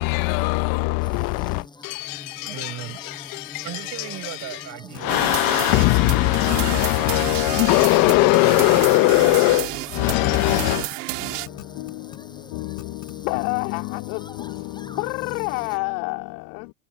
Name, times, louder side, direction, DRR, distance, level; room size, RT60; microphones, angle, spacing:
voice 1, 0.0-3.6 5.0-10.9 11.2-13.3 14.4-15.0, left 21 dB, 40° left, 1.0 m, -21 dB
sound 1, 1.0-15.8, left 3 dB, 10° left, 7.4 m, -43 dB
voice 2, 2.4-3.0 3.6-5.6, right 13 dB, 35° right, 4.7 m, -37 dB
sound 2, 4.9-5.0 5.6-6.2 6.5-6.6 6.8-7.4 7.6-8.2 8.5-8.6 9.0-9.2 9.7-9.8 10.4-10.6 10.9-11.0 11.5-12.2 12.8-13.1, left 16 dB, 75° left, 6.3 m, -40 dB
sound 3, 5.1-11.5, right 22 dB, 65° right, 1.8 m, -31 dB
voice 3, 13.2-14.2 14.5-14.7 14.9-16.7, left 30 dB, 55° left, 2.8 m, -28 dB
supercardioid pair, 135°, 50 cm